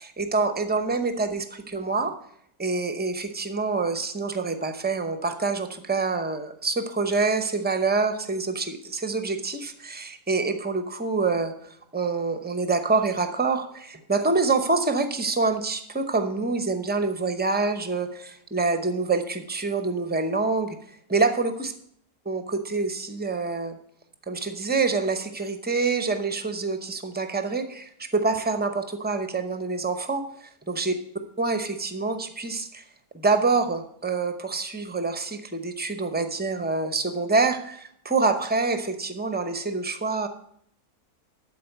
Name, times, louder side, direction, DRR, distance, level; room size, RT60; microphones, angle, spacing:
voice 1, 0.0-2.1 2.6-20.8 21.1-21.7 22.3-23.8 24.3-30.9 31.4-32.8 33.1-40.3, right 3 dB, 10° right, 8 dB, 0.4 m, -26 dB
12.5 x 4.5 x 7.9 m, 0.68 s
omnidirectional pair, 1.6 m